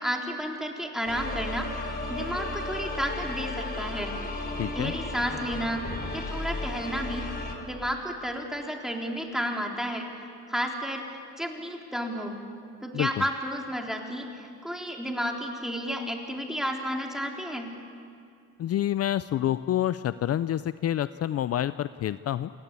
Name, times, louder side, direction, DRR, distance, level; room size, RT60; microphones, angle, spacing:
voice 1, 0.0-1.8 2.1-4.1 4.7-5.8 6.1-7.3 7.7-10.1 10.5-11.0 11.4-12.4 12.8-17.7, equal, ahead, 1 dB, 3.9 m, -32 dB
sound 1, 1.0-7.5, left 2 dB, 30° left, 4.1 m, -34 dB
voice 2, 4.6-4.9 12.9-13.2 18.6-22.5, left 12 dB, 55° left, 14 dB, 0.5 m, -28 dB
28.0 x 19.0 x 8.5 m, 2.3 s
cardioid pair, 90°, 30 cm